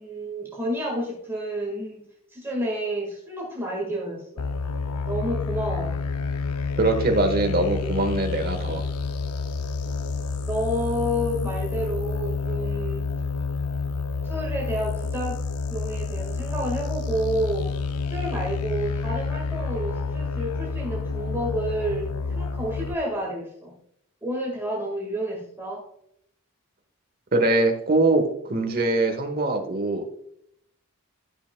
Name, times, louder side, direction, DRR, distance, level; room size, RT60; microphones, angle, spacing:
voice 1, 0.0-2.0 2.3-4.4 5.1-6.0 10.5-13.1 14.2-15.4 15.7-17.7 18.1-23.7 24.2-25.8, equal, 10° right, -3 dB, 1.6 m, -30 dB
sound 1, 4.4-22.9, left 4 dB, 90° left, 0.6 m, -29 dB
voice 2, 6.8-8.8 27.3-30.0, right 2 dB, 40° right, 5 dB, 1.2 m, -22 dB
12.5 x 6.1 x 2.2 m, 0.72 s
head